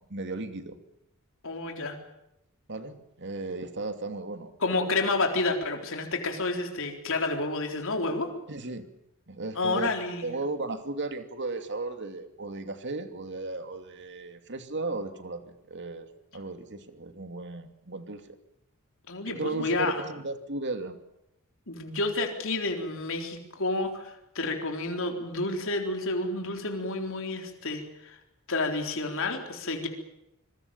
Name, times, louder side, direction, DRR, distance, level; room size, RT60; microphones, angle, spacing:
voice 1, 0.1-0.8 2.7-4.5 8.5-8.9 9.3-9.9 10.2-15.4 15.7-16.1 16.3-18.4 19.3-21.0, right 3 dB, 55° right, 8 dB, 2.7 m, -35 dB
voice 2, 1.4-2.0 4.6-8.3 9.6-10.3 19.1-20.0 21.7-28.2 28.5-29.9, left 2 dB, 65° left, 3 dB, 3.8 m, -30 dB
26.5 x 22.5 x 7.1 m, 0.83 s
head